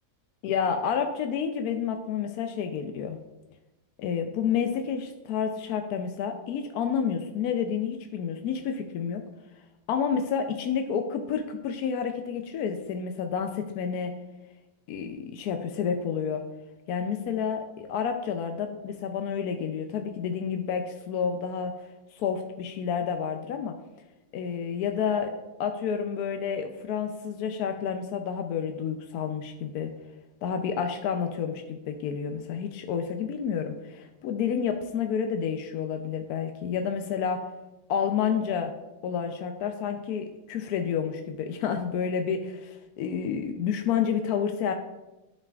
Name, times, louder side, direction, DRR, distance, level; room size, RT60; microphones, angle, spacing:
voice 1, 0.4-3.2 4.0-9.2 9.9-14.1 14.9-16.4 16.9-21.7 22.1-23.8 24.3-29.9 30.4-37.4 37.9-38.7 39.0-44.7, left 7 dB, 70° left, 5 dB, 1.0 m, -29 dB
11.5 x 5.5 x 2.3 m, 1.0 s
omnidirectional pair, 1.8 m